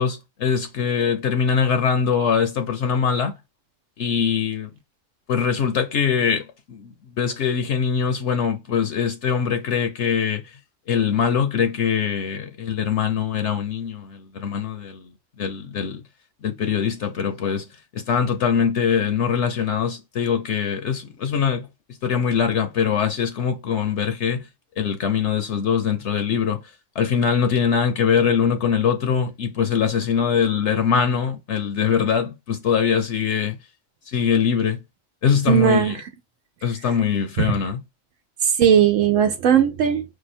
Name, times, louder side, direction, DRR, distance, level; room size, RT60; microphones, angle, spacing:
voice 1, 0.0-3.3 4.0-4.7 5.3-10.6 10.9-16.0 16.4-17.7 17.9-21.7 22.0-24.5 24.8-26.6 26.9-33.6 34.1-34.8 35.2-36.0 36.6-37.8, left 7 dB, 65° left, 0.9 m, -22 dB
voice 2, 35.5-36.0 37.4-37.5 38.4-40.0, right 8 dB, 80° right, 1.0 m, -17 dB
4.7 x 2.2 x 4.1 m
omnidirectional pair, 1.3 m